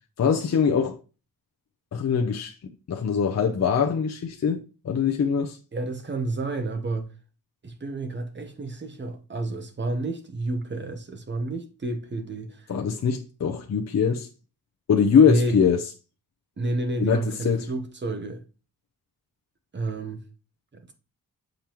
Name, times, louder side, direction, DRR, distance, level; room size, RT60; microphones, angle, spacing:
voice 1, 0.2-1.0 1.9-5.6 12.7-14.3 14.9-15.8 17.0-17.7, left 6 dB, 50° left, 0.6 m, -23 dB
voice 2, 5.7-7.1 7.6-12.7 15.2-15.6 16.6-18.4 19.7-20.2 20.7-20.9, right 2 dB, 30° right, 0.9 m, -30 dB
7.4 x 5.1 x 2.9 m
wide cardioid pair, 165°, 34 cm